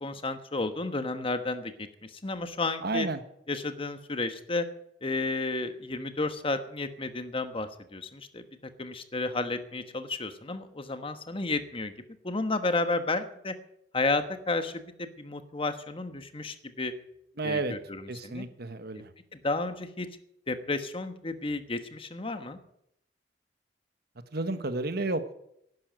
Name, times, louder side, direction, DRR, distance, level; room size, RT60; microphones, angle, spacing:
voice 1, 0.0-3.1 3.5-4.7 5.0-8.4 8.8-11.9 12.2-13.5 13.9-16.9 17.4-18.5 19.3-20.1 20.5-22.6, left 3 dB, 30° left, 9 dB, 1.3 m, -32 dB
voice 2, 2.8-3.2 17.4-17.7 18.1-19.1 24.3-25.3, right 2 dB, 60° right, 10 dB, 1.3 m, -31 dB
11.0 x 11.0 x 9.1 m, 0.78 s
head